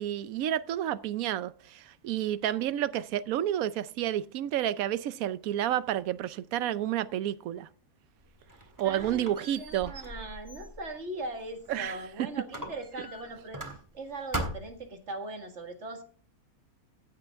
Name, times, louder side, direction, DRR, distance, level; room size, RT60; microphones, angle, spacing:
voice 1, 0.0-7.7 8.8-9.9 11.7-12.0, right 11 dB, 70° right, 1.0 m, -30 dB
Squeak, 8.2-12.1 12.5-14.0 14.3-14.9, right 1 dB, 15° right, 1.7 m, -40 dB
voice 2, 8.8-13.6 13.9-16.0, right 2 dB, 50° right, 2.0 m, -40 dB
15.0 x 6.8 x 3.5 m
omnidirectional pair, 1.6 m